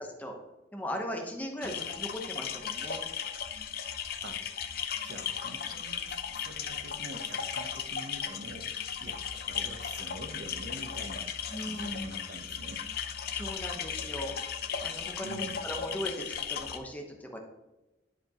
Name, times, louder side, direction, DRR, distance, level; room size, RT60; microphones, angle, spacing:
voice 1, 0.7-3.0 11.5-11.9 13.3-14.4 14.8-17.4, equal, 10° left, 2 dB, 1.0 m, -38 dB
sound 1, 1.6-16.8, left 8 dB, 60° left, 0.6 m, -36 dB
voice 2, 5.0-12.9 15.2-15.6, right 1 dB, 70° right, 6 dB, 0.9 m, -45 dB
11.0 x 5.1 x 3.0 m, 1.0 s
head